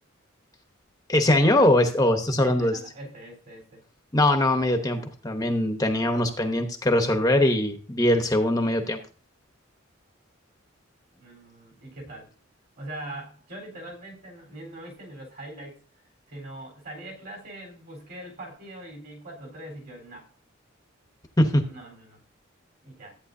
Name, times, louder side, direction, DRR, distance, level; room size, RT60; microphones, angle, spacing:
voice 1, 1.1-2.7 4.1-9.0 21.4-21.6, left 1 dB, 15° left, 5 dB, 0.9 m, -22 dB
voice 2, 2.4-3.8 11.1-12.3 12.8-15.8 16.3-20.3 21.7-22.2 22.8-23.2, right 1 dB, 50° right, 1 dB, 3.9 m, -42 dB
14.0 x 8.9 x 2.7 m, 0.37 s
head